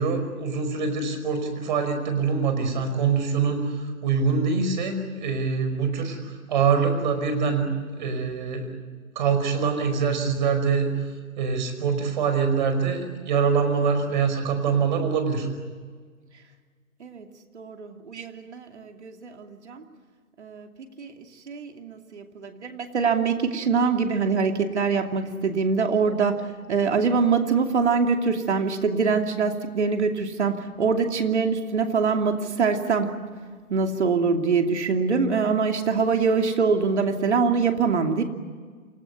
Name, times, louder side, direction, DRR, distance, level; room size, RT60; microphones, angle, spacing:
voice 1, 0.0-7.7 7.9-8.7 9.2-10.9 11.4-15.5, right 5 dB, 35° right, 7 dB, 5.3 m, -24 dB
voice 2, 17.5-19.8 20.4-20.7 21.0-21.1 21.5-33.1 33.7-38.2, right 5 dB, 50° right, 5 dB, 2.8 m, -24 dB
28.5 x 19.0 x 9.6 m, 1.5 s
hypercardioid pair, 155°, 42 cm